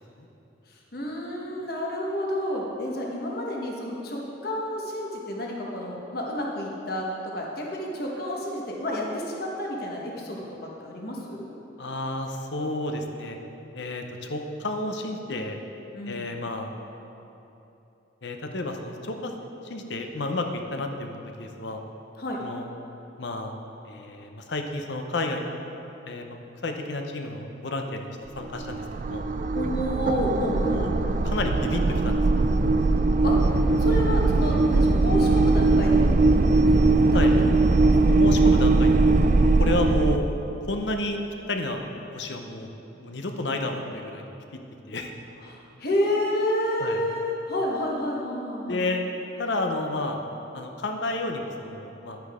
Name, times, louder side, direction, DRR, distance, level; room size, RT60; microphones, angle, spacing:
voice 1, 0.9-11.6 15.9-16.2 22.2-22.4 29.5-31.0 33.2-33.4 33.8-37.4 37.8-38.0 45.5-48.9, left 1 dB, 55° left, -2 dB, 1.4 m, -30 dB
voice 2, 11.8-13.4 13.7-15.6 16.1-16.7 18.2-19.3 19.6-21.8 22.4-22.7 23.2-23.6 23.8-25.4 26.1-26.4 26.6-28.1 28.4-29.3 30.7-30.9 31.2-32.5 33.5-33.6 37.1-37.3 38.0-39.2 39.6-40.3 40.7-41.2 41.5-41.8 42.1-42.7 43.0-44.3 44.9-45.1 46.8-47.0 48.7-49.0 49.4-50.2 50.5-52.2, left 2 dB, 70° left, 4 dB, 0.8 m, -31 dB
sound 1, 28.3-40.2, right 3 dB, 40° right, 0.3 m, -20 dB
11.0 x 9.2 x 3.7 m, 2.9 s
head